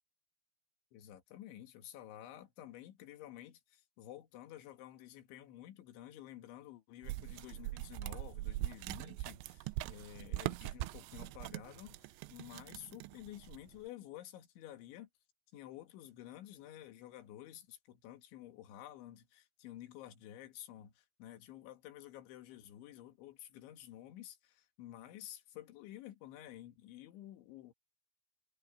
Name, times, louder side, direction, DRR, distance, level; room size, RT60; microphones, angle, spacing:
voice 1, 0.9-15.1 15.5-27.7, left 12 dB, 75° left, 4.2 m, -52 dB
sound 1, 7.0-13.8, right 18 dB, 80° right, 2.7 m, -42 dB
Slam, 11.5-12.8, right 2 dB, 35° right, 6.0 m, -69 dB
omnidirectional pair, 5.5 m